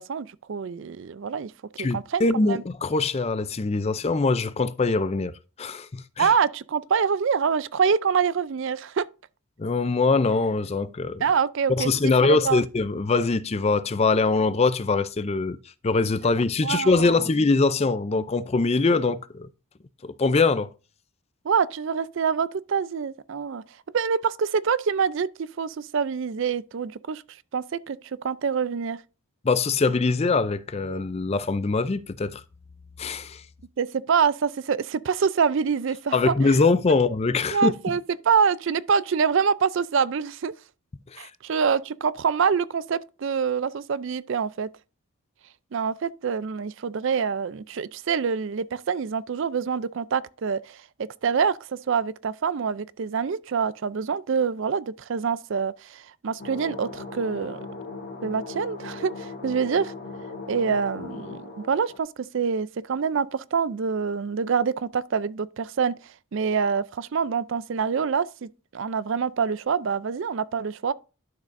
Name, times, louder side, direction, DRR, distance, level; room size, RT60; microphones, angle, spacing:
voice 1, 0.0-1.5 1.9-2.6 6.2-9.0 11.2-12.6 16.6-17.2 21.4-23.6 23.9-27.2 27.5-28.0 28.2-29.0 33.8-36.5 37.5-40.5 41.2-44.7 45.7-50.8 51.2-51.6 51.9-57.6 58.2-59.9 60.5-65.9 66.3-70.9, right 6 dB, 55° right, 0.4 m, -26 dB
voice 2, 1.8-5.3 5.6-6.3 9.6-11.2 11.8-15.6 15.8-19.5 20.0-20.7 29.4-32.4 33.0-33.4 36.1-37.7 41.1-41.3, left 3 dB, 30° left, 0.4 m, -23 dB
sound 1, 56.4-62.0, left 3 dB, 45° left, 1.3 m, -38 dB
11.5 x 6.5 x 2.6 m
head